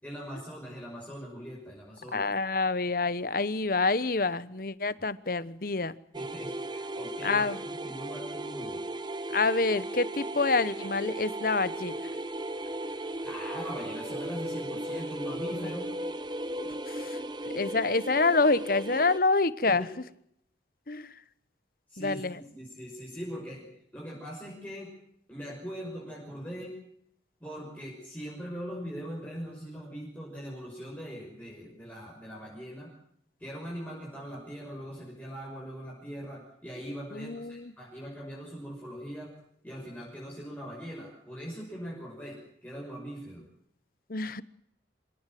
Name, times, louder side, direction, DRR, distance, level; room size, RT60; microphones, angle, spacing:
voice 1, 0.0-2.3 6.1-8.8 13.2-15.9 19.6-19.9 21.9-24.9 25.3-26.8 27.4-32.9 33.4-39.3 39.6-43.5, equal, 10° left, -4 dB, 5.9 m, -41 dB
voice 2, 2.1-5.9 7.2-7.6 9.3-12.0 16.6-19.8 20.9-21.2 22.0-22.4 37.1-37.7 44.1-44.4, left 3 dB, 50° left, 17 dB, 1.0 m, -27 dB
sound 1, 6.1-19.2, right 1 dB, 25° right, 1.1 m, -36 dB
26.0 x 17.5 x 7.7 m, 0.72 s
head